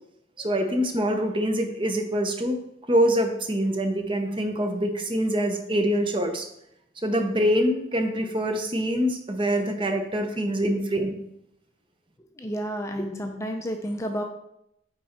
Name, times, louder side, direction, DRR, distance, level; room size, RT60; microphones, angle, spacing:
voice 1, 0.4-2.6 2.9-6.5 7.0-11.1, equal, 25° right, 5 dB, 0.6 m, -25 dB
voice 2, 12.4-14.2, equal, 15° left, 4 dB, 0.5 m, -31 dB
8.4 x 3.7 x 4.4 m, 0.80 s
head